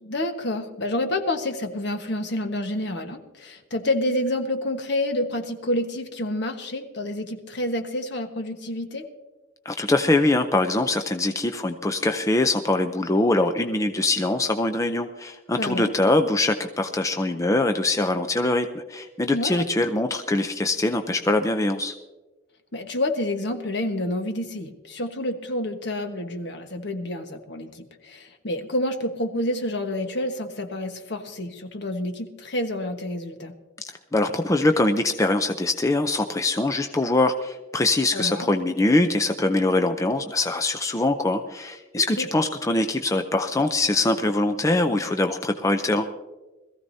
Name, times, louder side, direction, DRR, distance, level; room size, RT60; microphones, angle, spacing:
voice 1, 0.0-9.1 15.6-15.9 19.3-19.6 22.7-33.5 38.1-38.5 41.9-42.3, left 1 dB, 60° left, 5 dB, 1.3 m, -28 dB
voice 2, 9.7-21.9 34.1-46.1, left 2 dB, 15° left, 6 dB, 0.5 m, -23 dB
21.5 x 14.5 x 2.7 m, 1.1 s
head